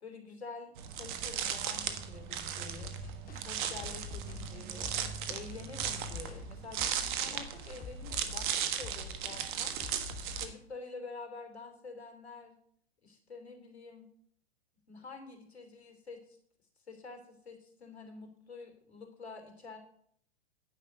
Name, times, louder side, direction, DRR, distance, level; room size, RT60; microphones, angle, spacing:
voice 1, 0.0-2.9 3.3-4.9 5.3-9.7 10.3-12.5 13.0-14.1 14.9-16.4 16.9-19.8, left 4 dB, 85° left, 5 dB, 3.0 m, -48 dB
sound 1, 0.8-10.4, right 9 dB, 50° right, 1.4 m, -37 dB
sound 2, 2.8-10.6, left 5 dB, 25° left, 2.0 m, -47 dB
10.0 x 5.6 x 8.1 m, 0.66 s
hypercardioid pair, 120°, 31 cm